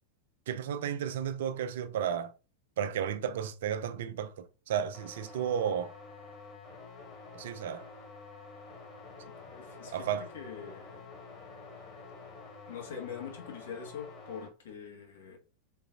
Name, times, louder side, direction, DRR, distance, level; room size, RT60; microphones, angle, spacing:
voice 1, 0.5-2.3 2.8-5.9 7.3-7.9 9.9-10.3, right 8 dB, 55° right, 0.4 m, -33 dB
sound 1, 4.9-14.5, left 4 dB, 30° left, 1.6 m, -49 dB
voice 2, 9.5-11.1 12.7-15.4, left 7 dB, 60° left, 1.4 m, -43 dB
3.8 x 3.8 x 2.5 m
figure-of-eight pair, 90°, 0 cm